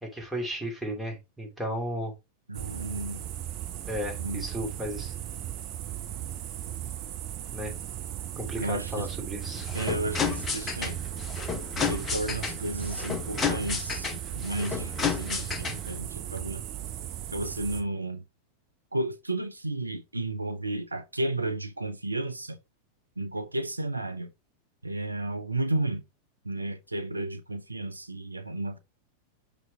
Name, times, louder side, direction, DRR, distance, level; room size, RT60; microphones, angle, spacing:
voice 1, 0.0-2.1 3.9-5.1 7.5-7.7 8.4-9.7, equal, ahead, 2.7 m, -34 dB
sound 1, 2.5-17.8, right 12 dB, 40° right, 1.3 m, -37 dB
voice 2, 2.5-3.3 4.2-4.4 8.6-9.1 9.7-11.0 11.7-16.6 17.3-18.2 18.9-22.6 23.2-24.3 24.8-26.0 26.4-28.8, right 2 dB, 85° right, 0.6 m, -33 dB
sound 2, 9.4-16.0, left 6 dB, 25° left, 0.9 m, -32 dB
6.0 x 5.1 x 3.4 m
figure-of-eight pair, 90°, 0 cm